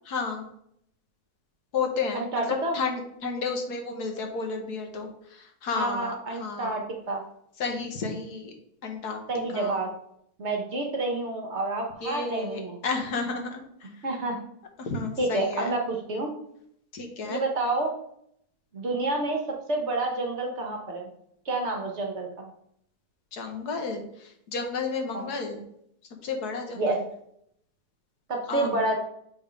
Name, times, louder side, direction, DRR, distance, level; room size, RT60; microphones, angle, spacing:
voice 1, 0.1-0.5 1.7-6.8 7.6-8.5 8.8-9.2 9.5-9.8 12.0-13.9 14.8-15.7 16.9-17.4 23.3-25.6 26.2-27.0 28.5-28.7, left 4 dB, 80° left, 4 dB, 1.6 m, -32 dB
voice 2, 2.1-2.8 5.7-7.2 9.3-9.9 10.4-12.8 14.0-14.4 15.2-16.3 17.3-17.9 18.7-21.1 21.5-22.5 25.1-25.2 26.7-27.0 28.3-29.0, right 2 dB, 50° right, 2 dB, 1.1 m, -29 dB
6.9 x 3.5 x 5.0 m, 0.73 s
omnidirectional pair, 1.7 m